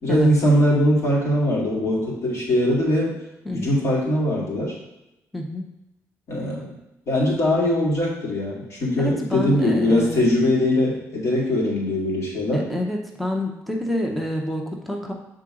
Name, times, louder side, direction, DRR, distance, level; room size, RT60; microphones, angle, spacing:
voice 1, 0.0-3.1 3.5-4.8 6.3-6.7 7.1-12.6, left 1 dB, 55° left, -4 dB, 2.2 m, -21 dB
voice 2, 5.3-5.7 9.0-10.3 12.5-15.1, left 1 dB, ahead, 0 dB, 0.7 m, -27 dB
7.2 x 3.9 x 3.8 m, 0.92 s
cardioid pair, 125°, 6 cm